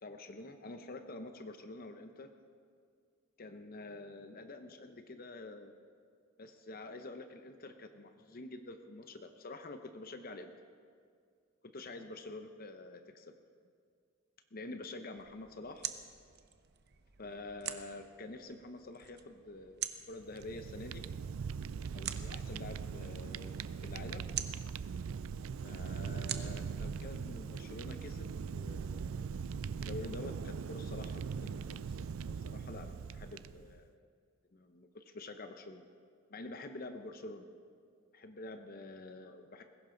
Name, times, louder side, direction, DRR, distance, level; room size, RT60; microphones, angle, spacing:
voice 1, 0.0-2.3 3.4-5.7 6.4-10.5 11.6-13.4 14.5-15.9 17.2-21.1 21.9-24.3 25.6-29.6 29.9-34.1 34.5-35.9 36.3-37.5 38.1-39.6, left 2 dB, 45° left, 7 dB, 0.7 m, -47 dB
sound 1, 15.2-27.9, right 10 dB, 55° right, 0.8 m, -47 dB
Fire, 20.2-33.8, right 6 dB, 80° right, 0.4 m, -41 dB
20.0 x 16.5 x 3.9 m, 2.2 s
head